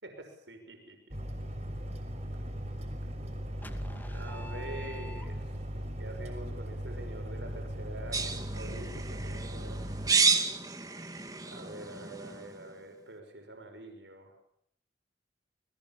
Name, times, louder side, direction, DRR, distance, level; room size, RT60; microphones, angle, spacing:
voice 1, 0.0-1.2 3.0-3.1 4.1-5.5 6.0-9.8 11.5-14.4, right 1 dB, 85° right, 5 dB, 5.9 m, -46 dB
sound 1, 1.1-10.1, equal, 40° right, 5.8 m, -38 dB
sound 2, 3.6-5.7, left 1 dB, 10° left, 2.2 m, -44 dB
sound 3, 8.1-12.6, right 4 dB, 20° right, 2.2 m, -31 dB
30.0 x 22.0 x 7.5 m, 0.70 s
head